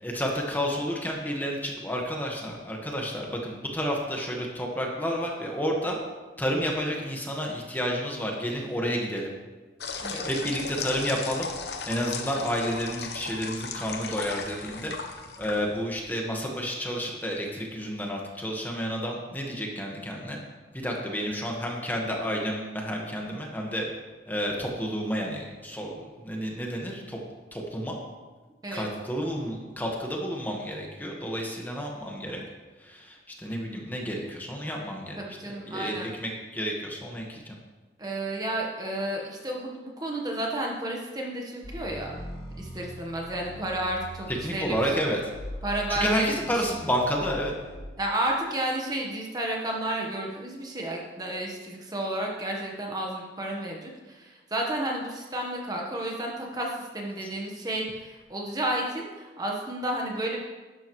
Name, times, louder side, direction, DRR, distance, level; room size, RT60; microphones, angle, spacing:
voice 1, 0.0-6.0 6.4-9.3 10.3-11.5 11.8-14.9 15.4-20.4 20.7-23.8 24.3-27.2 27.5-28.0 28.7-32.4 32.8-35.2 35.7-37.6 44.4-45.2 45.9-47.5 57.2-57.3, equal, 10° left, -1 dB, 1.5 m, -30 dB
sound 1, 9.8-16.0, left 5 dB, 65° left, 1.0 m, -36 dB
voice 2, 35.2-36.1 38.0-42.2 42.6-44.8 45.6-46.3 46.6-46.7 48.0-60.4, right 1 dB, 20° right, -1 dB, 1.2 m, -32 dB
sound 2, 41.6-47.8, right 1 dB, 30° left, 2.2 m, -41 dB
11.5 x 11.5 x 3.2 m, 1.3 s
head